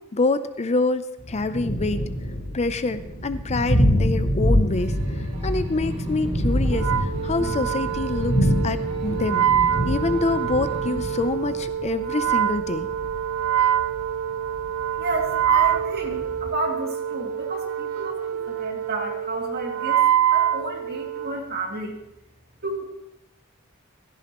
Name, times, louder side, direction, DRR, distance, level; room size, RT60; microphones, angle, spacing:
voice 1, 0.1-2.0 2.5-4.9 5.4-9.5 9.9-12.9, left 3 dB, 30° left, 12 dB, 0.5 m, -26 dB
Thunder, 1.2-16.5, equal, 50° left, 4.4 m, -26 dB
sound 1, 4.7-11.3, left 1 dB, 30° right, 2.2 m, -38 dB
Wind instrument woodwind instrument, 6.7-21.4, right 10 dB, 85° right, 0.4 m, -25 dB
voice 2, 15.0-22.0 22.6-22.8, right 2 dB, 50° right, 0 dB, 2.5 m, -31 dB
16.0 x 14.0 x 3.0 m, 0.87 s
head